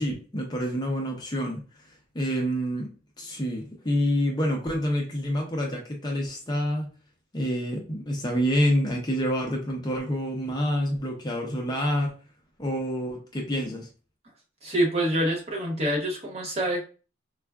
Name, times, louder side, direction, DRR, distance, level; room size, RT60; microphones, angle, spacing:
voice 1, 0.0-1.6 2.1-6.9 7.3-12.1 12.6-13.9, equal, 20° left, 0 dB, 0.5 m, -27 dB
voice 2, 14.6-16.8, right 1 dB, 30° right, 0 dB, 0.7 m, -26 dB
4.3 x 2.4 x 2.3 m, 0.37 s
head